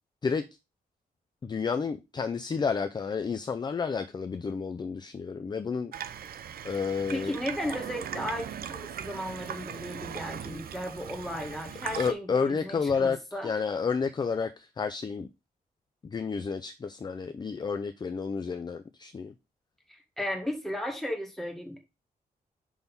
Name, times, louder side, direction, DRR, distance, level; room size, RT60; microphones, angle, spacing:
voice 1, 1.4-5.9 6.6-7.4 12.0-13.2 13.4-15.3 16.0-19.3, left 5 dB, 30° left, 0.4 m, -30 dB
Water tap faucet / Sink (filling or washing), 5.9-12.1, right 9 dB, 75° right, 0.6 m, -39 dB
voice 2, 7.1-13.5 19.9-21.8, equal, ahead, 1.7 m, -35 dB
6.2 x 3.5 x 5.4 m
wide cardioid pair, 130°, 16 cm